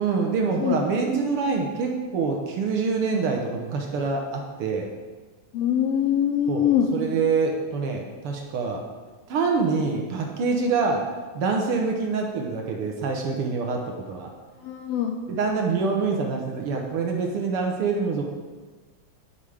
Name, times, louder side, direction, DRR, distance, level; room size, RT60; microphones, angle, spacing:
voice 1, 0.0-4.9 6.5-8.8 9.3-11.1 11.3-14.3 15.3-18.2, right 4 dB, 65° right, 1 dB, 1.5 m, -25 dB
voice 2, 5.5-6.9 14.6-15.1, left 9 dB, 80° left, 3 dB, 1.5 m, -23 dB
10.5 x 5.5 x 4.9 m, 1.4 s
omnidirectional pair, 3.3 m